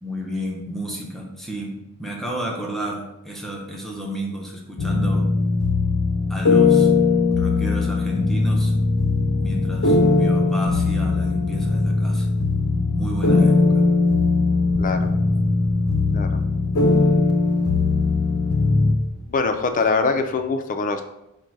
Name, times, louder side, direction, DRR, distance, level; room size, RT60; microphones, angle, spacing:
voice 1, 0.0-5.3 6.3-6.9 7.3-8.7 9.4-12.3 13.0-13.9, equal, ahead, -2 dB, 0.7 m, -32 dB
sound 1, 4.8-18.9, left 3 dB, 80° left, 0.6 m, -19 dB
sound 2, 9.1-20.4, right 2 dB, 50° right, 0.5 m, -36 dB
voice 2, 14.8-15.1 16.1-16.4 19.3-21.0, left 4 dB, 40° left, 7 dB, 0.4 m, -23 dB
5.1 x 2.2 x 4.5 m, 0.87 s
head